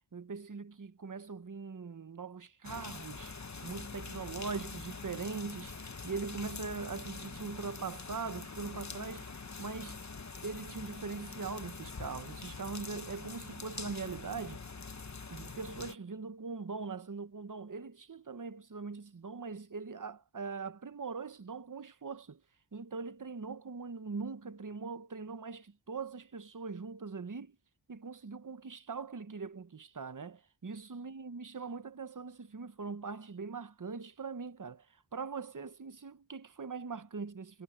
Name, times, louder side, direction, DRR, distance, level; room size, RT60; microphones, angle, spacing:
voice 1, 0.1-9.3 9.6-10.0 10.4-14.6 15.3-22.4 22.7-27.6 27.9-37.6, right 4 dB, 40° right, 1.0 m, -41 dB
sound 1, 2.6-15.9, left 4 dB, 35° left, 1.0 m, -45 dB
wide cardioid pair, 50°, 48 cm